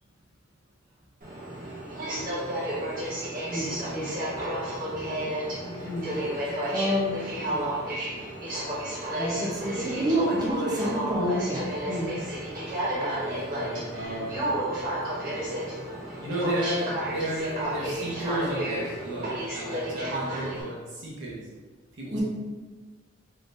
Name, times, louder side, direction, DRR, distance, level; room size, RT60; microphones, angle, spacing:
Aircraft, 1.2-20.6, right 1 dB, 45° right, 1.3 m, -32 dB
voice 1, 4.8-5.3 5.6-6.4 6.7-7.1 7.5-7.7 9.2-12.1 22.1-22.2, equal, 20° right, -4 dB, 0.7 m, -29 dB
voice 2, 12.9-14.4 16.2-21.4 22.0-22.2, right 1 dB, 65° right, -4 dB, 1.0 m, -33 dB
3.7 x 3.4 x 2.6 m, 1.3 s
head